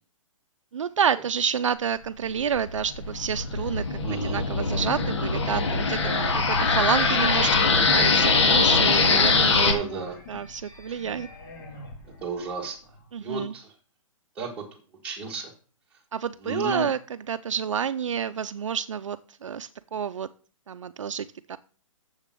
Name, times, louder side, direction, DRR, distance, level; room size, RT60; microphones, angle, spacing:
voice 1, 0.7-6.0 6.3-9.9 10.3-11.3 13.1-13.5 16.1-20.3 20.7-21.6, right 7 dB, 65° right, 11 dB, 0.6 m, -29 dB
sound 1, 2.4-9.7, left 4 dB, 55° left, 1.9 m, -22 dB
voice 2, 4.0-4.4 6.0-6.4 9.5-10.1 12.2-12.8 13.2-13.7 14.4-14.6 15.0-15.5 16.4-16.9, right 3 dB, 5° right, -2 dB, 1.6 m, -32 dB
sound 2, 5.6-12.4, left 3 dB, 35° left, 2.0 m, -33 dB
7.3 x 6.8 x 7.6 m, 0.39 s
hypercardioid pair, 175°, 18 cm